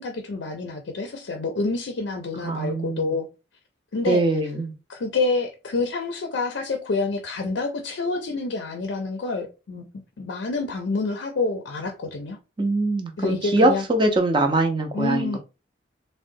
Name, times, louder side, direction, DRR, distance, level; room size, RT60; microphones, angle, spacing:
voice 1, 0.0-3.3 3.9-4.2 4.9-9.9 10.2-12.4 13.2-13.8 14.9-15.4, left 3 dB, 75° left, 0.4 m, -27 dB
voice 2, 2.4-3.1 4.0-4.7 12.6-15.4, right 2 dB, 25° right, 0.5 m, -22 dB
3.7 x 2.1 x 2.5 m
head